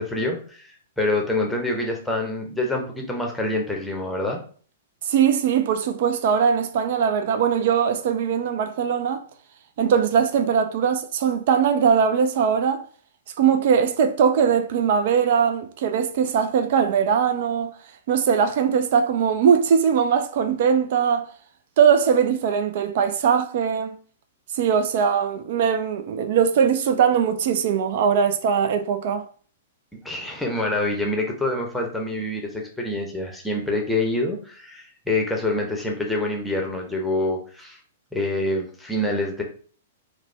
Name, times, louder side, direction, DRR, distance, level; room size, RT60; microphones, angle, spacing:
voice 1, 0.0-4.4 30.0-37.8 38.1-39.4, left 2 dB, 5° left, 0.8 m, -26 dB
voice 2, 5.0-9.2 9.8-12.8 13.4-17.8 18.1-21.3 21.8-24.0 24.5-29.3, right 7 dB, 50° right, 0.3 m, -20 dB
4.9 x 2.1 x 3.2 m
figure-of-eight pair, 105°, 0 cm